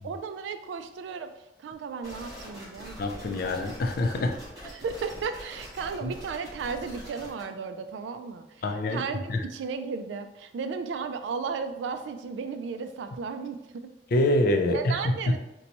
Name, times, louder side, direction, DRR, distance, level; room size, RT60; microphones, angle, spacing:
voice 1, 0.0-1.3 1.6-3.3 4.6-8.4 8.9-13.9 14.7-15.4, right 5 dB, 85° right, 9 dB, 0.3 m, -34 dB
sound 1, 2.0-7.4, equal, 20° right, 1.4 m, -44 dB
voice 2, 3.0-4.4 6.0-6.1 8.6-9.0 9.3-9.4 14.1-15.4, left 1 dB, 55° left, 4 dB, 0.4 m, -25 dB
3.9 x 2.2 x 2.9 m, 0.94 s
head